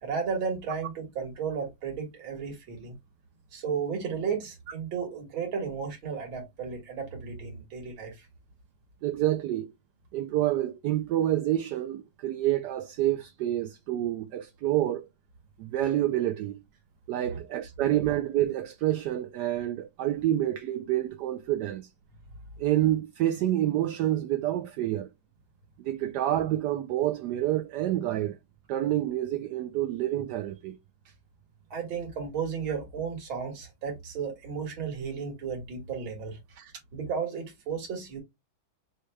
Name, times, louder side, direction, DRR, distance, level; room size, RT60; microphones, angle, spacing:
voice 1, 0.0-3.0 3.5-8.3 17.3-17.4 31.7-36.4 36.9-38.2, right 6 dB, 90° right, 2.4 m, -34 dB
voice 2, 9.0-9.7 10.1-15.1 15.6-16.6 17.1-21.9 22.6-25.1 25.8-28.4 28.7-30.8 36.5-36.7, right 13 dB, 75° right, 1.0 m, -28 dB
6.3 x 2.3 x 3.2 m
omnidirectional pair, 2.1 m